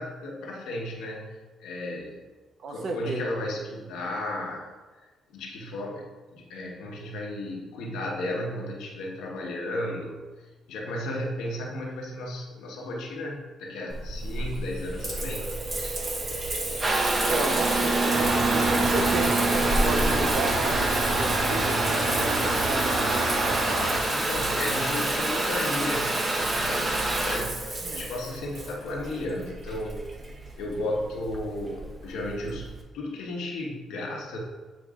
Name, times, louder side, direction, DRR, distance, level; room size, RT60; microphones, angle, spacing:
voice 1, 0.0-1.3 1.6-2.2 2.7-4.7 5.0-10.2 10.7-15.5 17.0-17.6 18.8-19.0 23.9-30.0 30.6-34.4, left 1 dB, 90° left, -1 dB, 1.2 m, -34 dB
voice 2, 2.6-3.2 17.3-23.4 27.8-28.0, right 3 dB, 60° right, 4 dB, 0.9 m, -32 dB
Water tap faucet / Bathtub (filling or washing) / Trickle dribble, 13.9-32.8, right 2 dB, 35° right, 1.0 m, -27 dB
sound 1, 18.1-24.0, right 2 dB, 90° right, 0.9 m, -29 dB
8.9 x 4.7 x 2.4 m, 1.3 s
cardioid pair, 90°, 0 cm